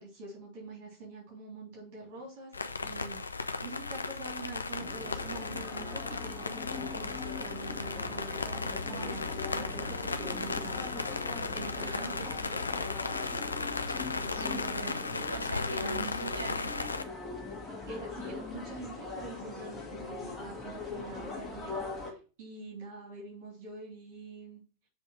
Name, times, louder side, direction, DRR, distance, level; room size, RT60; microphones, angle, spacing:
voice 1, 0.0-2.5 2.8-3.2 3.6-10.9 11.2-12.4 14.1-15.0 15.8-15.9 17.9-21.8 22.1-24.6, right 2 dB, 50° right, -3 dB, 3.1 m, -45 dB
sound 1, 2.5-17.0, left 4 dB, 80° left, 0.5 m, -36 dB
sound 2, 4.8-22.1, left 4 dB, 15° left, 2.0 m, -41 dB
voice 2, 11.7-12.3 14.3-16.9, right 7 dB, 65° right, 4 dB, 1.7 m, -43 dB
6.9 x 3.5 x 5.9 m, 0.36 s
figure-of-eight pair, 90°, 0 cm